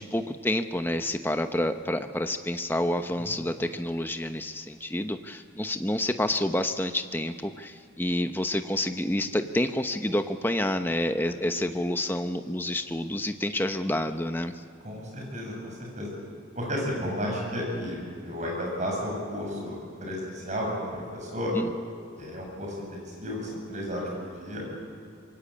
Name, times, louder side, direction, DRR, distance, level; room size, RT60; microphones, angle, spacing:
voice 1, 0.0-14.5 21.5-21.7, left 1 dB, 10° left, 7 dB, 0.9 m, -28 dB
voice 2, 3.1-3.5 11.6-11.7 14.8-16.1 16.6-18.0 18.2-21.5 22.1-24.6, equal, 35° right, -1 dB, 7.4 m, -33 dB
25.5 x 22.5 x 8.7 m, 2.5 s
head